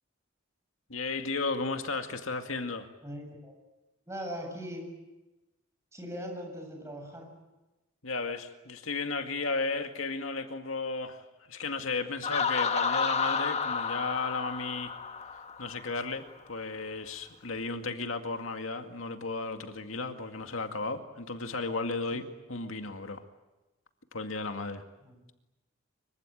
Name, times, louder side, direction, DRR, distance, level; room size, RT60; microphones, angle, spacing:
voice 1, 0.9-2.9 8.0-14.9 15.6-22.2 22.5-23.2 24.1-24.8, left 3 dB, 85° left, 6 dB, 2.1 m, -34 dB
voice 2, 3.0-3.6 4.1-4.9 5.9-7.3 22.1-22.2 25.0-25.2, equal, 15° right, 2 dB, 7.5 m, -40 dB
Laughter, 12.2-15.9, left 5 dB, 30° left, 1.3 m, -31 dB
25.5 x 24.5 x 9.1 m, 1.1 s
head